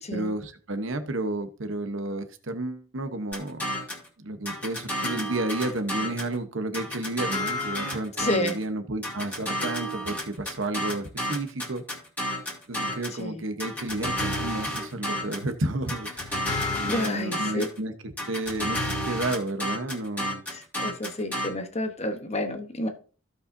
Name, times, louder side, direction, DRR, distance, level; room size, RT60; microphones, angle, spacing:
voice 1, 0.1-3.7 4.2-11.8 12.7-16.4 16.8-17.9 18.3-20.4, right 2 dB, 65° right, 9 dB, 1.0 m, -31 dB
sound 1, 3.3-4.1 4.5-6.3 6.7-8.6 9.0-13.2 13.6-15.5 15.9-17.8 18.2-21.5, left 1 dB, 10° left, 2.6 m, -31 dB
voice 2, 8.2-8.6 13.2-13.4 16.8-17.7 20.5-22.9, left 1 dB, 30° left, 6 dB, 1.0 m, -30 dB
15.5 x 5.5 x 2.7 m, 0.38 s
head